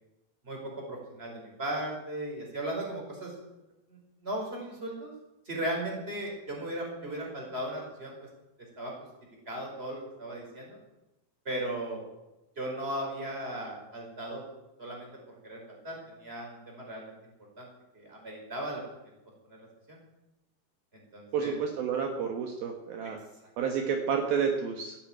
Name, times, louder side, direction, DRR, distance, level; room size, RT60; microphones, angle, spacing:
voice 1, 0.4-3.3 3.9-5.1 5.4-8.1 8.8-8.9 9.4-10.8 11.4-12.0 12.6-14.4 14.8-17.1 17.6-17.7 17.9-18.8 19.5-20.0 20.9-21.6, right 1 dB, 15° right, 0 dB, 4.9 m, -37 dB
voice 2, 21.3-23.2 23.6-25.0, right 6 dB, 70° right, 3 dB, 3.1 m, -30 dB
14.5 x 9.9 x 9.2 m, 0.97 s
omnidirectional pair, 4.7 m